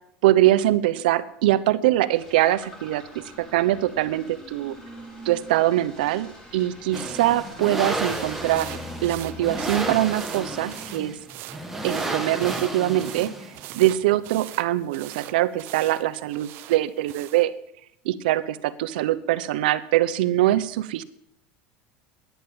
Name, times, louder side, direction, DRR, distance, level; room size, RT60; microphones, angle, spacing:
voice 1, 0.2-4.7 5.2-8.7 9.0-11.2 11.8-13.3 13.7-17.5 18.0-21.0, right 14 dB, 85° right, 12 dB, 0.8 m, -23 dB
sound 1, 2.1-11.7, left 1 dB, 15° left, 3.7 m, -44 dB
sound 2, 6.9-13.7, right 2 dB, 5° right, 1.6 m, -32 dB
sound 3, 8.0-17.5, right 16 dB, 50° right, 0.7 m, -42 dB
10.5 x 9.2 x 8.7 m, 0.79 s
supercardioid pair, 150°, 5 cm